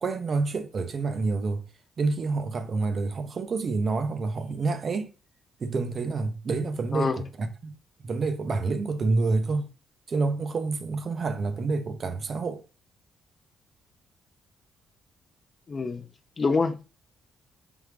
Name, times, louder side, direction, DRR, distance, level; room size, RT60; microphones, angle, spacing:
voice 1, 0.0-1.6 2.0-5.1 5.6-7.7 8.0-9.7 10.1-12.6, right 3 dB, 45° right, 0.6 m, -28 dB
voice 2, 6.9-7.2 15.7-16.1 16.4-16.8, left 4 dB, 35° left, 0.4 m, -26 dB
3.5 x 3.5 x 3.1 m
cardioid pair, 90°, 0 cm